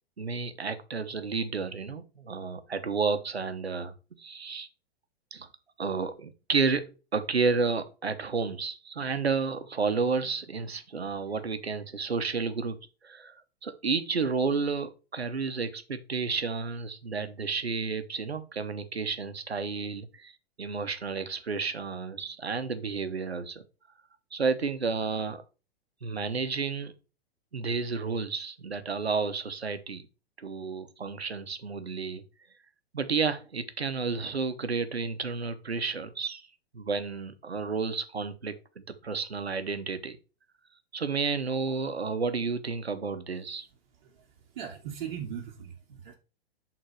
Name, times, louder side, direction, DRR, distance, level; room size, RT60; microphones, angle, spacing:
voice 1, 0.2-4.7 5.3-5.5 5.8-12.8 13.0-13.3 13.6-20.3 20.6-23.6 24.3-25.4 26.0-26.9 27.5-30.1 30.4-32.2 32.9-36.5 36.7-40.2 40.9-43.7, right 4 dB, 80° right, 0.9 m, -31 dB
voice 2, 43.9-46.1, right 8 dB, 45° right, 1.2 m, -40 dB
6.5 x 3.9 x 4.3 m
figure-of-eight pair, 105°, 31 cm